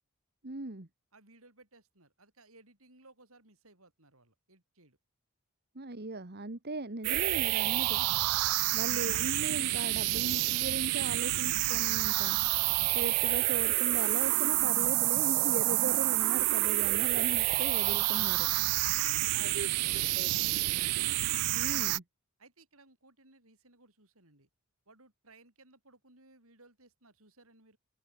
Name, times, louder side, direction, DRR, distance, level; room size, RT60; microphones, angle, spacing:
voice 1, 0.4-0.9 5.8-8.1 8.7-12.4 12.9-18.5 19.3-19.7 19.9-20.3 21.5-22.0, right 2 dB, 45° right, 1.7 m, -38 dB
voice 2, 1.1-5.0 8.4-8.8 18.6-20.8 22.4-24.5 24.9-27.8, right 2 dB, 65° right, 7.0 m, -61 dB
sound 1, 7.0-22.0, right 20 dB, 85° right, 0.3 m, -28 dB
open air
head